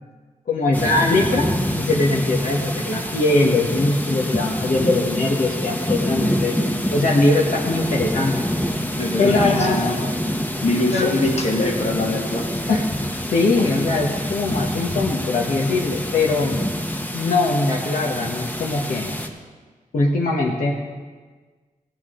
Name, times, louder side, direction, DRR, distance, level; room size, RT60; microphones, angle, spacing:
voice 1, 0.5-1.5 1.8-6.6 6.9-8.3 9.2-9.8 10.9-11.1 12.7-12.9 13.3-16.6 17.1-19.1 19.9-20.7, left 2 dB, 70° left, -2 dB, 1.3 m, -21 dB
sound 1, 0.7-19.3, equal, 10° left, 0.9 m, -26 dB
voice 2, 9.0-10.0 10.6-12.5, left 2 dB, 50° left, 1 dB, 1.6 m, -22 dB
16.5 x 8.8 x 3.8 m, 1.4 s
wide cardioid pair, 115°, 14 cm